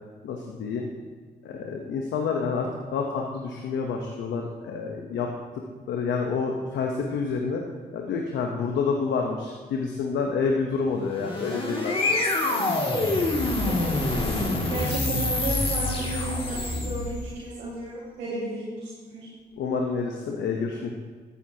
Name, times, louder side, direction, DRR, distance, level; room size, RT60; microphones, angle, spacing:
voice 1, 0.2-0.9 1.4-5.3 5.9-7.6 7.9-12.2 19.6-20.9, left 5 dB, 85° left, 1 dB, 0.9 m, -28 dB
sound 1, 11.0-17.3, left 2 dB, 30° left, 2.3 m, -26 dB
voice 2, 13.6-19.3, right 2 dB, 90° right, -7 dB, 1.8 m, -33 dB
13.5 x 8.0 x 2.8 m, 1.5 s
supercardioid pair, 55°, 18 cm